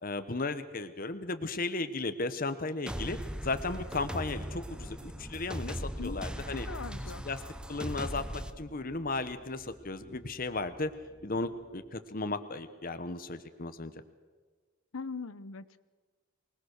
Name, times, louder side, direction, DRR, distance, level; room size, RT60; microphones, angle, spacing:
voice 1, 0.0-3.2 3.4-6.7 7.2-7.4 7.7-10.9 11.2-14.0, left 3 dB, 40° left, 10 dB, 1.0 m, -35 dB
sound 1, 2.9-8.5, equal, 5° right, 0.7 m, -39 dB
sound 2, 4.7-11.9, equal, 20° left, 3.0 m, -53 dB
voice 2, 6.7-7.2 14.9-15.8, left 4 dB, 75° left, 15 dB, 0.8 m, -40 dB
24.5 x 20.5 x 6.6 m, 1.4 s
head